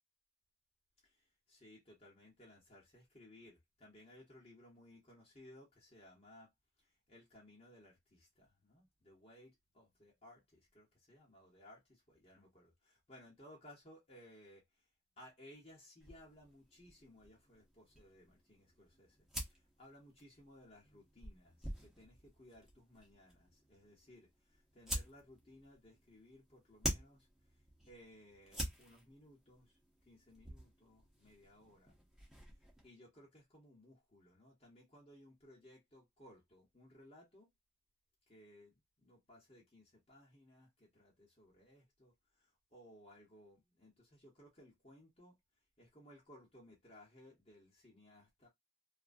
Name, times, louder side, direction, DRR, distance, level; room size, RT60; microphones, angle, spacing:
voice 1, 1.0-6.5 6.8-14.9 15.2-32.0 32.5-32.6 32.8-37.5 38.3-45.4 45.8-48.5, left 1 dB, 35° left, 1.0 m, -61 dB
sound 1, 16.0-32.9, equal, ahead, 0.9 m, -48 dB
2.9 x 2.5 x 2.6 m
head